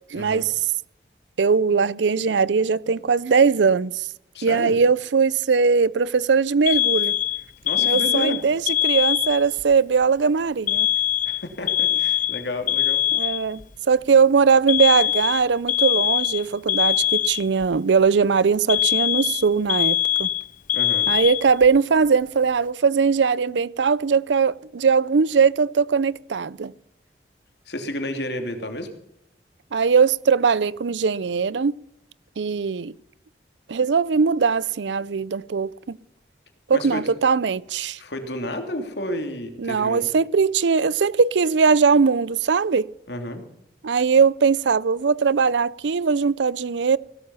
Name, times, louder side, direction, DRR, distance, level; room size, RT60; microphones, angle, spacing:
voice 1, 0.1-0.5 1.4-4.1 4.4-7.1 7.8-10.9 13.1-13.6 13.9-20.3 21.1-26.7 29.7-31.7 32.4-32.9 33.7-36.0 36.7-38.0 39.6-42.9 43.8-47.0, right 5 dB, 90° right, 0.5 m, -20 dB
voice 2, 4.3-4.7 7.6-8.4 11.2-13.0 20.7-21.1 27.7-28.9 36.7-37.1 38.0-40.1 43.1-43.5, left 1 dB, 75° left, 2.9 m, -31 dB
Alarm, 6.7-9.6 10.7-13.6 14.7-17.7 18.7-21.7, left 11 dB, 45° left, 0.5 m, -22 dB
17.0 x 12.5 x 5.6 m
head